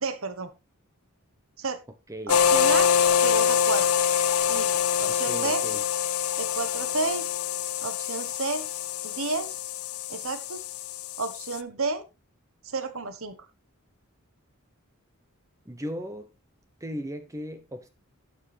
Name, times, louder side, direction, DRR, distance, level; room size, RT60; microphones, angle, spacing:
voice 1, 0.0-0.5 1.6-1.8 2.3-2.9 3.2-4.0 4.5-5.6 6.4-7.3 7.8-8.6 9.0-9.6 10.1-10.6 11.2-12.0 12.6-13.4, right 3 dB, 65° right, 1.3 m, -31 dB
sound 1, 2.3-11.6, left 8 dB, 80° left, 0.7 m, -25 dB
voice 2, 5.1-5.8 15.7-16.3 16.8-17.9, equal, 15° right, 0.8 m, -37 dB
11.5 x 9.1 x 3.4 m
head